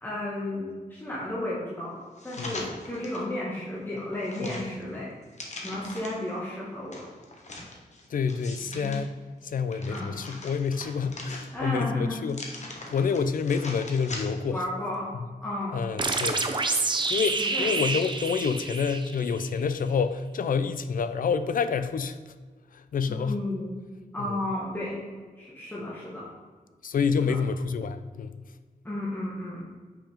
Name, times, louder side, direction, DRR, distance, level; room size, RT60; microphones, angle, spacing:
voice 1, 0.0-2.0 2.2-5.1 5.6-7.1 9.9-10.2 11.5-12.2 14.5-15.1 15.4-15.9 17.3-17.7 23.1-23.8 24.1-25.0 25.4-26.3 27.2-27.4 28.8-29.6, left 1 dB, 15° left, -7 dB, 1.3 m, -33 dB
sound 1, 2.2-3.3 3.8-6.3 6.9-9.0 9.5-11.8 12.3-14.6 14.9-15.0, left 2 dB, 50° left, 1.0 m, -41 dB
voice 2, 8.1-9.1 9.4-12.4 12.9-14.7 15.2-15.3 15.7-16.5 17.1-22.2 22.7-23.4 24.2-24.4 26.8-28.4, left 5 dB, 65° left, 11 dB, 0.4 m, -28 dB
sound 2, 16.0-19.5, right 3 dB, 30° right, 0.5 m, -28 dB
5.9 x 5.0 x 3.5 m, 1.5 s
wide cardioid pair, 100°, 15 cm